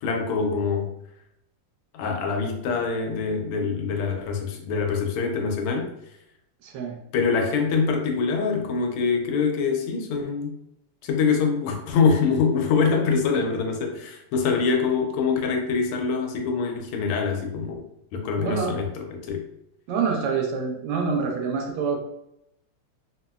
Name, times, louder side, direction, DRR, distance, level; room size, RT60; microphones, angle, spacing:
voice 1, 0.0-0.9 1.9-5.9 7.1-10.5 11.0-17.8 18.1-19.4, left 5 dB, 90° left, 3 dB, 1.5 m, -24 dB
voice 2, 6.6-7.0 18.4-18.7 19.9-22.0, right 5 dB, 70° right, 1 dB, 1.1 m, -26 dB
3.8 x 2.0 x 2.2 m, 0.80 s
omnidirectional pair, 2.4 m